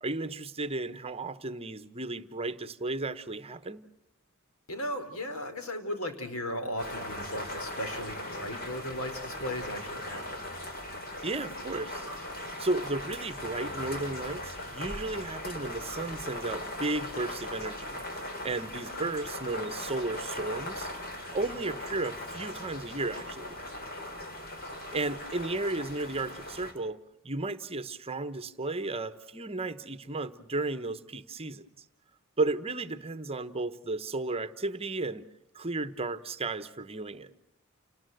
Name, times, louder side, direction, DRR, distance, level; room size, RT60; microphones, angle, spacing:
voice 1, 0.0-3.8 11.2-12.1 12.6-20.9 21.3-23.6 24.9-27.0 27.2-31.7 32.4-35.2 35.5-37.3, right 2 dB, 30° right, 12 dB, 1.0 m, -34 dB
voice 2, 4.7-10.4, left 1 dB, 80° left, 7 dB, 3.9 m, -36 dB
sound 1, 6.8-26.7, left 1 dB, 45° left, 4.4 m, -39 dB
29.5 x 19.5 x 7.8 m, 0.80 s
head